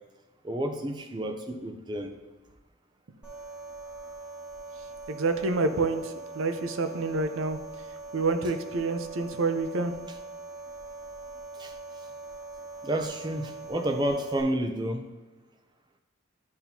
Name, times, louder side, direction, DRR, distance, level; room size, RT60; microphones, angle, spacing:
voice 1, 0.4-2.1 11.6-11.7 12.8-15.1, right 1 dB, 20° right, 5 dB, 0.5 m, -30 dB
sound 1, 3.2-14.4, right 3 dB, 5° right, 1.4 m, -42 dB
voice 2, 4.8-9.9, right 3 dB, 75° right, 8 dB, 0.6 m, -29 dB
10.5 x 4.3 x 2.7 m, 1.2 s
head